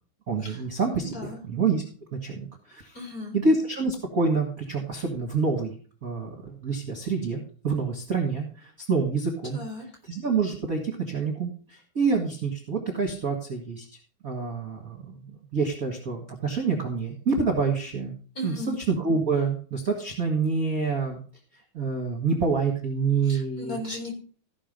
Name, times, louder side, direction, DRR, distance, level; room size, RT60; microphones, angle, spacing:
voice 1, 0.3-1.2 1.4-1.8 2.1-3.0 3.3-9.6 10.1-13.8 14.2-15.3 15.5-18.1 18.4-21.2 21.7-23.8, right 4 dB, 35° right, 2 dB, 1.6 m, -27 dB
voice 2, 0.9-1.4 2.9-3.4 9.5-9.9 18.3-18.8 23.2-24.1, left 2 dB, 25° left, 0 dB, 4.2 m, -36 dB
15.0 x 6.1 x 5.3 m, 0.42 s
omnidirectional pair, 3.6 m